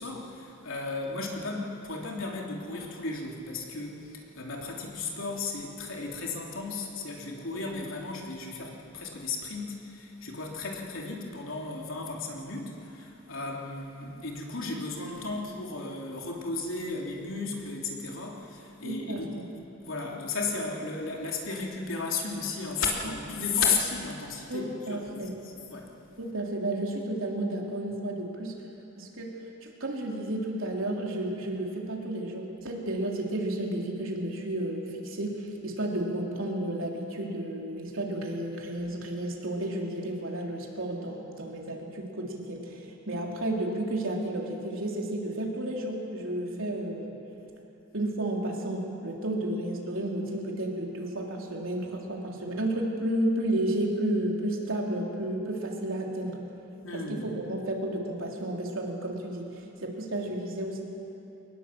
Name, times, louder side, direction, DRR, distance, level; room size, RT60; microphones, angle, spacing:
voice 1, 0.0-19.3 19.8-25.9 56.8-57.3, left 4 dB, 80° left, -1 dB, 3.1 m, -34 dB
voice 2, 18.8-19.4 24.5-25.3 26.2-28.5 29.0-29.3 29.6-47.2 47.9-56.4 56.9-59.5 59.8-60.8, right 1 dB, 80° right, -1 dB, 3.4 m, -32 dB
23.0 x 19.0 x 7.7 m, 2.9 s
head